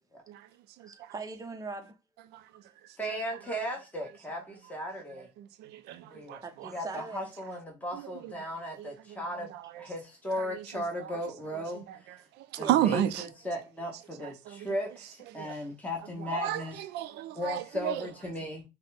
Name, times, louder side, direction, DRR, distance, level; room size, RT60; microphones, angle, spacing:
voice 1, 0.8-2.0 6.4-7.3 12.6-12.8, right 3 dB, 20° right, 0.8 m, -40 dB
voice 2, 3.0-5.3 6.1-6.4 6.7-9.5 9.8-12.1 12.6-16.8 17.3-18.6, equal, 10° left, 1.3 m, -36 dB
voice 3, 5.4-6.7 8.8-9.2 10.5-10.6 12.7-13.2 14.5-14.7 15.4-15.5 16.3-18.0, right 12 dB, 85° right, 0.6 m, -31 dB
5.6 x 2.2 x 3.4 m
cardioid pair, 110°, 17 cm